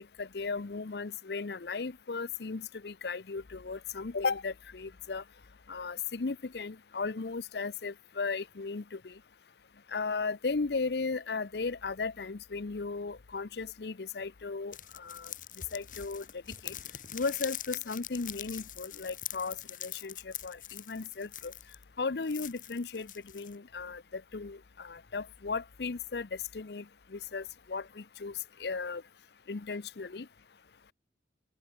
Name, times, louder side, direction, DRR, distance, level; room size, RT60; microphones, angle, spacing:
voice 1, 0.0-5.2 5.7-9.1 9.9-15.3 15.7-16.2 16.6-16.7 17.1-19.6 19.8-21.5 22.0-26.8 27.1-28.3 28.6-29.0 29.5-30.3, left 4 dB, 70° left, 0.7 m, -36 dB
sound 1, 14.7-21.8 22.2-23.6, left 12 dB, 45° left, 3.9 m, -43 dB
open air
head